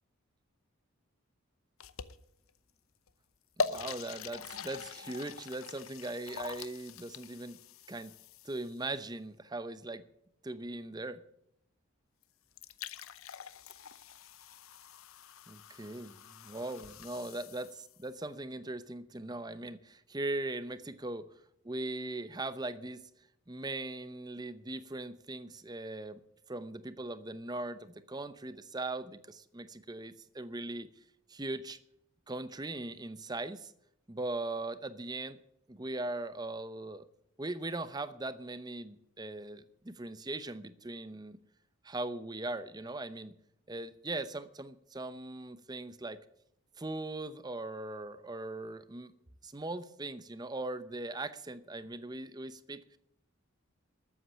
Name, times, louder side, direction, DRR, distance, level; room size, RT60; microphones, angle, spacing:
sound 1, 1.8-2.5 3.1-3.2 3.6-8.8 12.2-12.3 12.5-18.1, left 5 dB, 80° left, 0.8 m, -43 dB
voice 1, 3.6-7.6 7.9-8.1 8.4-10.1 10.4-11.2 15.5-21.3 21.6-23.1 23.5-26.2 26.5-30.9 31.3-31.8 32.3-33.7 34.1-35.4 35.7-37.0 37.4-41.4 41.8-43.4 43.7-46.2 46.8-49.1 49.4-53.0, right 2 dB, 20° right, 13 dB, 0.7 m, -40 dB
13.0 x 8.6 x 8.5 m, 0.76 s
head